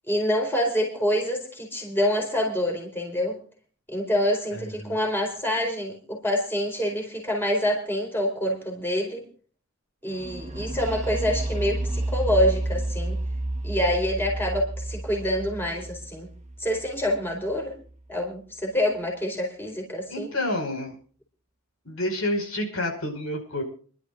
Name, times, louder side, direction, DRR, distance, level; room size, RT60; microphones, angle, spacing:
voice 1, 0.1-3.4 3.9-9.3 10.0-13.2 13.6-16.3 16.6-17.8 18.1-20.3, equal, 10° left, 0 dB, 4.3 m, -26 dB
voice 2, 4.5-5.0 20.1-21.0 21.8-23.6, left 1 dB, 80° left, 3 dB, 5.5 m, -29 dB
sound 1, 10.2-17.9, right 1 dB, 35° right, 1.3 m, -31 dB
29.0 x 12.0 x 2.6 m, 0.42 s
head